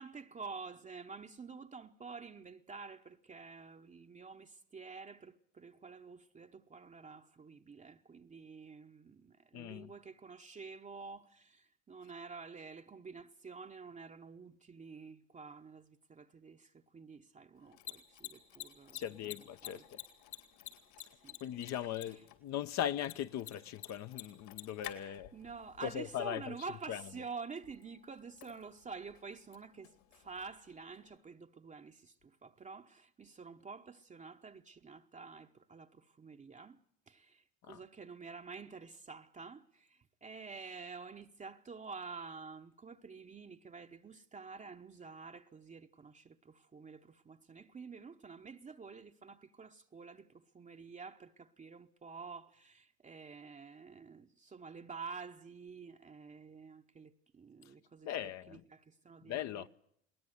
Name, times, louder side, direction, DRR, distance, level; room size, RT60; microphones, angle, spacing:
voice 1, 0.0-19.3 19.6-19.9 21.0-21.4 21.7-22.2 25.0-36.8 37.1-59.7, right 4 dB, 20° right, 0.9 m, -49 dB
voice 2, 9.5-9.9 18.9-20.0 21.4-25.3 25.8-26.5 26.9-27.0 37.7-37.8 58.0-58.6 59.3-59.7, left 10 dB, 45° left, 0.9 m, -39 dB
Mechanisms, 17.6-31.2, left 14 dB, 70° left, 3.4 m, -53 dB
21.5 x 18.5 x 8.0 m
hypercardioid pair, 80°, 37 cm